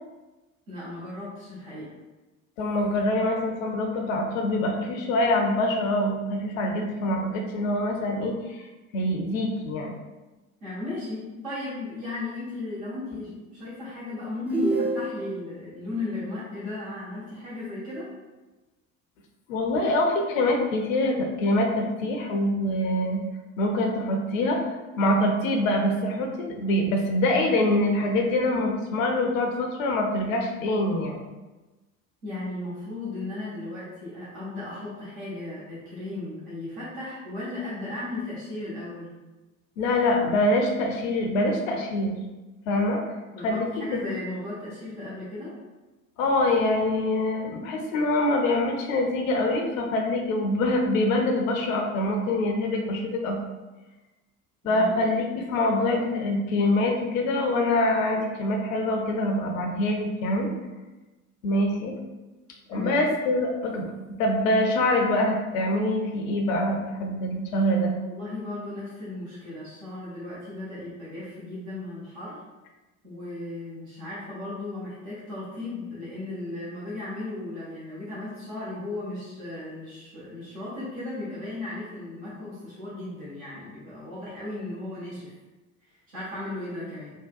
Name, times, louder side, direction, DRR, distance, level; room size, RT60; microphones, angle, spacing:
voice 1, 0.7-1.9 10.6-18.1 32.2-39.1 43.3-45.5 54.6-54.9 62.7-63.0 68.0-72.3 73.0-85.3 85.9-87.1, left 2 dB, 70° right, -9 dB, 1.1 m, -36 dB
voice 2, 2.6-8.6 8.9-9.9 19.5-23.2 23.6-24.6 25.0-31.2 39.8-42.1 42.7-43.0 43.4-44.0 46.2-53.4 54.6-60.5 61.4-61.9 62.7-63.9 64.2-67.9, left 1 dB, 70° left, 2 dB, 0.6 m, -25 dB
sound 1, 14.5-15.5, right 2 dB, 5° right, 0.3 m, -26 dB
3.6 x 2.1 x 2.3 m, 1.1 s
figure-of-eight pair, 60°, 43 cm